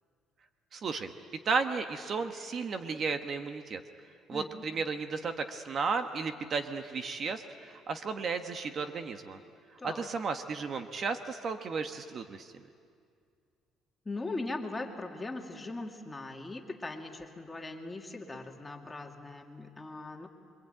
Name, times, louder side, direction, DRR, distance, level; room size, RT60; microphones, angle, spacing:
voice 1, 0.7-1.1 1.4-3.8 4.3-9.4 9.8-12.6, right 4 dB, 45° right, 7 dB, 1.3 m, -34 dB
voice 2, 4.3-4.6 9.8-10.1 14.0-20.3, left 2 dB, 15° left, 2 dB, 2.3 m, -40 dB
26.5 x 23.5 x 9.1 m, 2.2 s
cardioid pair, 120°, 0 cm